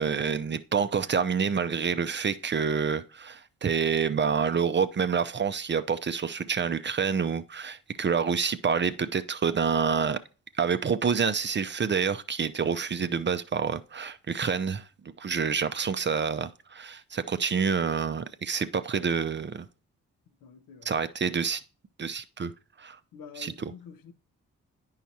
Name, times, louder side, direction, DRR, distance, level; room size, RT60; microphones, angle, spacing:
voice 1, 0.0-10.2 10.6-14.8 15.2-19.7 20.9-21.6 22.0-22.5 22.8-23.0 23.4-23.7, right 6 dB, 35° right, 0.5 m, -27 dB
voice 2, 20.4-21.0 23.1-24.1, left 6 dB, 75° left, 0.9 m, -47 dB
9.1 x 5.6 x 2.8 m
supercardioid pair, 50°, 34 cm